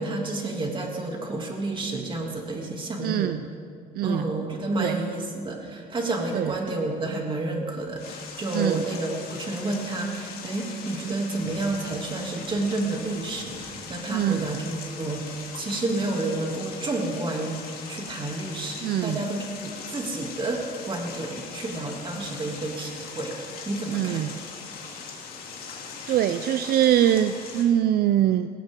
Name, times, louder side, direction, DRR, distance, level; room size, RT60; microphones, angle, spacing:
voice 1, 0.0-3.4 4.0-23.3 23.7-24.3, right 2 dB, 30° right, 0 dB, 2.8 m, -30 dB
voice 2, 3.0-3.4 3.9-4.2 4.8-5.0 6.3-6.5 8.5-8.8 14.1-14.4 18.8-19.2 23.9-24.4 26.1-28.5, right 11 dB, 65° right, 11 dB, 0.5 m, -23 dB
sound 1, 8.0-27.6, left 5 dB, 65° left, 2.8 m, -40 dB
19.5 x 16.5 x 3.8 m, 2.1 s
cardioid pair, 110°, 17 cm